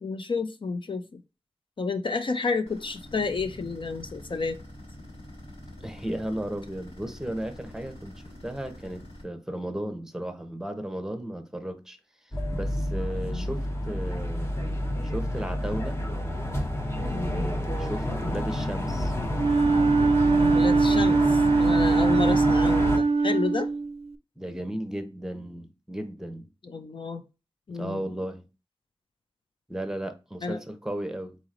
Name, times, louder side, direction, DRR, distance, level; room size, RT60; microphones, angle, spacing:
voice 1, 0.0-1.2 1.8-4.6 13.3-13.5 17.1-17.5 20.5-23.7 26.6-27.2 27.7-28.1 30.4-30.6, left 4 dB, 55° left, 0.5 m, -31 dB
sound 1, 2.7-9.2, left 1 dB, 90° left, 2.3 m, -45 dB
voice 2, 5.8-12.0 12.5-14.5 15.1-16.0 17.1-19.1 24.4-26.5 27.7-28.5 29.7-31.4, right 1 dB, 5° right, 0.9 m, -35 dB
sound 2, 12.3-23.0, left 1 dB, 25° left, 1.0 m, -29 dB
Wind instrument woodwind instrument, 19.3-24.1, right 3 dB, 85° right, 0.4 m, -22 dB
4.0 x 3.0 x 3.7 m
wide cardioid pair, 80°, 10 cm